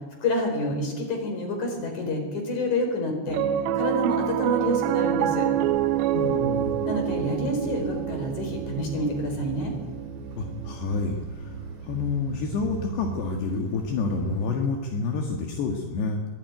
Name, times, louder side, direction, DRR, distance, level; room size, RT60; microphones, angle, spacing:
voice 1, 0.2-3.4 3.7-5.5 6.8-9.7, left 1 dB, 40° left, 4 dB, 5.4 m, -28 dB
Piano, 3.3-13.8, right 11 dB, 80° right, 2.9 m, -28 dB
sound 1, 5.5-14.5, right 4 dB, 35° right, 4.1 m, -40 dB
voice 2, 6.1-6.9 10.4-16.3, left 4 dB, 70° left, 2 dB, 3.6 m, -29 dB
23.0 x 16.0 x 9.6 m, 1.3 s
omnidirectional pair, 5.3 m